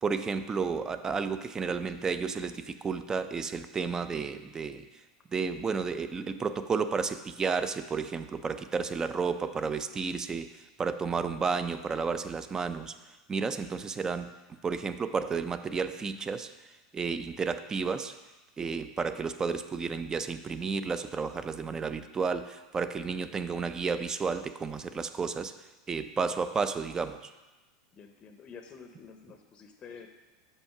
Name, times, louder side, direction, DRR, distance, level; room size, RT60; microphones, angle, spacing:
voice 1, 0.0-4.9 5.3-10.5 10.8-13.0 13.3-14.3 14.6-16.5 16.9-18.2 18.6-25.5 25.9-27.3, right 5 dB, 20° right, 11 dB, 0.4 m, -32 dB
voice 2, 27.9-30.1, left 6 dB, 30° left, 6 dB, 0.7 m, -49 dB
6.4 x 5.5 x 5.8 m, 1.1 s
supercardioid pair, 120°, 3 cm